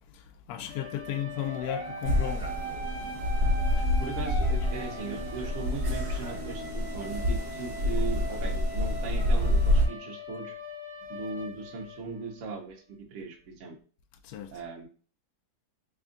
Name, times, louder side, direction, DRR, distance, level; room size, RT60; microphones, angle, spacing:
voice 1, 0.1-2.5 14.2-14.5, left 10 dB, 75° left, 0.8 m, -35 dB
sound 1, 0.6-12.4, equal, 15° left, 0.8 m, -41 dB
sound 2, 1.0-8.6, right 5 dB, 75° right, 1.3 m, -48 dB
sound 3, 2.0-9.9, left 1 dB, 40° right, 1.2 m, -28 dB
voice 2, 3.7-10.5 11.1-13.7 14.5-14.8, right 4 dB, 55° right, 0.8 m, -39 dB
3.4 x 2.4 x 3.7 m
omnidirectional pair, 2.1 m